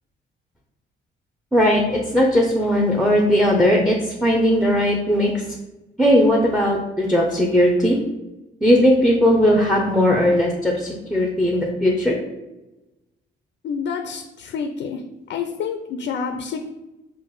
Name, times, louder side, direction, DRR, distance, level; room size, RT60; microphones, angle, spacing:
voice 1, 1.5-5.4 6.0-8.0 8.6-12.1, equal, ahead, 0 dB, 0.7 m, -18 dB
voice 2, 13.6-15.0 15.3-16.7, left 6 dB, 65° left, 6 dB, 0.5 m, -28 dB
4.5 x 2.5 x 4.6 m, 1.0 s
cardioid pair, 90°, 20 cm